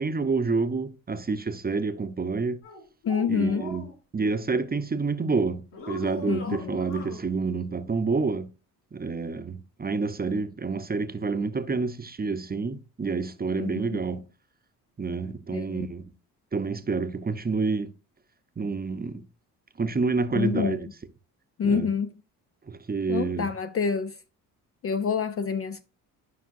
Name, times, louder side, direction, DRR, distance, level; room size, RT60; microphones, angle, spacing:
voice 1, 0.0-2.6 3.3-3.9 4.1-8.5 8.9-14.2 15.0-16.0 16.5-17.9 18.6-19.3 19.8-20.9 21.6-21.9 22.7-23.6, right 4 dB, 20° right, 0.8 m, -28 dB
sound 1, 2.6-3.9 5.7-7.2, left 3 dB, 70° left, 3.4 m, -39 dB
voice 2, 3.1-3.6 6.3-6.7 13.6-13.9 15.5-15.9 20.3-20.8 21.6-22.1 23.1-24.1 24.8-25.8, left 6 dB, 30° left, 0.5 m, -27 dB
11.5 x 5.5 x 2.6 m
hypercardioid pair, 50°, 45 cm